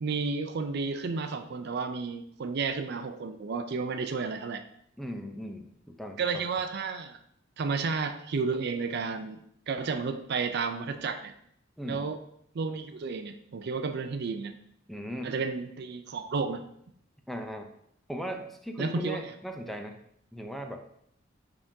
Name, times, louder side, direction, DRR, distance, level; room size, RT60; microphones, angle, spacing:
voice 1, 0.0-4.6 6.2-7.2 7.6-11.3 11.8-12.2 12.5-14.5 15.2-16.6 18.8-19.2, right 4 dB, 55° right, 9 dB, 0.4 m, -32 dB
voice 2, 5.0-6.5 11.8-12.1 14.9-15.4 17.3-17.7 18.1-20.0 20.3-20.8, equal, ahead, 4 dB, 0.5 m, -38 dB
9.5 x 3.7 x 2.7 m, 0.71 s
head